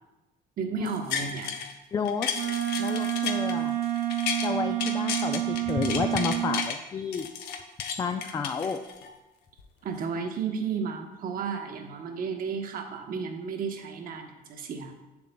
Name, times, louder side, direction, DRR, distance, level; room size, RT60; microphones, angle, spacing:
voice 1, 0.6-1.5 9.8-14.9, right 6 dB, 55° right, 4 dB, 1.0 m, -33 dB
sound 1, 0.9-1.7 2.1-4.5 4.8-6.8 7.1-9.1 9.6-9.7, left 7 dB, 85° left, 0.8 m, -33 dB
voice 2, 1.9-2.3 2.8-3.8 4.4-7.3 8.0-8.8, left 5 dB, 20° left, 7 dB, 0.3 m, -30 dB
Wind instrument woodwind instrument, 2.3-6.7, right 13 dB, 85° right, 0.6 m, -29 dB
7.4 x 6.9 x 2.2 m, 1.0 s
cardioid pair, 110°, 17 cm